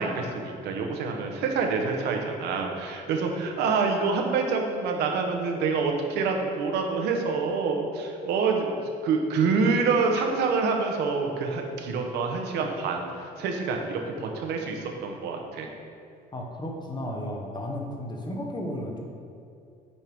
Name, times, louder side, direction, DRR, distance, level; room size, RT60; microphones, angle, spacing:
voice 1, 0.0-15.7, right 4 dB, 80° right, 3 dB, 0.9 m, -27 dB
voice 2, 16.3-19.0, left 1 dB, 25° left, 0 dB, 1.1 m, -33 dB
8.7 x 4.5 x 3.5 m, 2.5 s
cardioid pair, 110°, 17 cm